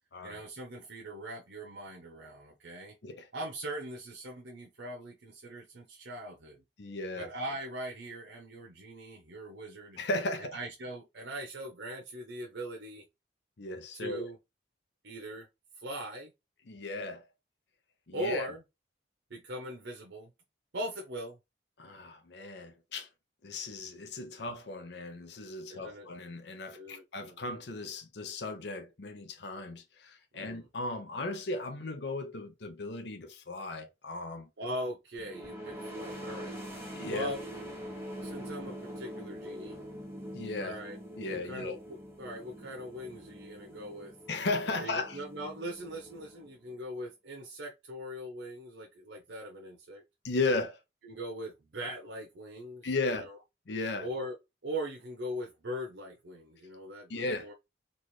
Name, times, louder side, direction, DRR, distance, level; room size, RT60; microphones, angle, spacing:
voice 1, 0.2-3.0 3.3-6.6 7.2-10.0 10.4-13.0 13.9-14.4 15.0-15.5 15.8-16.3 18.1-18.6 19.3-20.3 20.7-21.4 25.7-26.1 26.7-27.4 30.3-30.7 34.6-36.6 37.1-37.4 38.2-39.8 40.6-41.0 41.3-44.1 44.8-50.0 51.0-53.4 54.0-54.4 54.6-57.5, equal, 85° right, 0.8 m, -40 dB
voice 2, 6.8-7.3 10.0-10.6 13.6-14.3 16.7-17.2 18.1-18.5 21.8-23.1 23.4-34.5 36.9-37.3 40.3-40.8 41.2-41.8 44.3-45.2 50.2-50.8 52.8-53.3 53.7-54.1 57.1-57.5, left 2 dB, 70° left, 0.7 m, -36 dB
sound 1, 35.2-46.7, equal, 15° right, 1.1 m, -44 dB
4.1 x 2.5 x 3.1 m
head